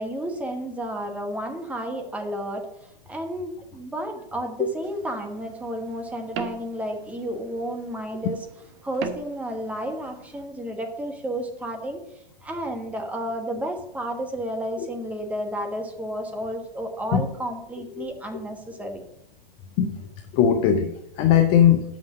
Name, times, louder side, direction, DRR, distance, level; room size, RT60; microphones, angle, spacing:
voice 1, 0.0-8.4 8.8-12.0 12.4-19.0, right 1 dB, 5° right, 3 dB, 1.1 m, -32 dB
sound 1, 4.8-10.5, right 7 dB, 30° right, 0.9 m, -41 dB
voice 2, 20.3-21.8, left 9 dB, 20° left, 7 dB, 0.5 m, -19 dB
6.2 x 5.8 x 7.3 m, 0.80 s
hypercardioid pair, 130°, 30 cm